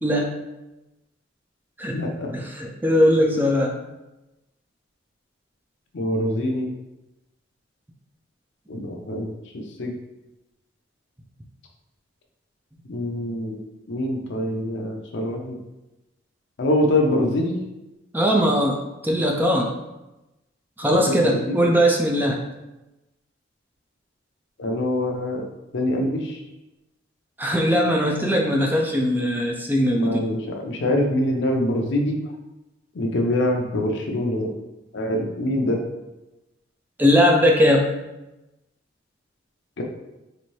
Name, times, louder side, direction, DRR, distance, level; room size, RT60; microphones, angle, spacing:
voice 1, 0.0-0.3 1.8-2.0 2.3-3.7 18.1-18.8 19.0-19.7 20.8-22.4 27.4-30.2 37.0-37.9, equal, 10° right, 1 dB, 0.4 m, -20 dB
voice 2, 1.9-2.3 5.9-6.7 8.7-9.9 12.9-13.6 13.9-15.6 16.6-17.6 20.8-21.6 24.6-26.4 29.9-32.2 32.9-34.5 34.9-35.8 39.8-39.9, left 1 dB, 65° left, 2 dB, 0.6 m, -24 dB
4.2 x 2.6 x 3.1 m, 0.99 s
head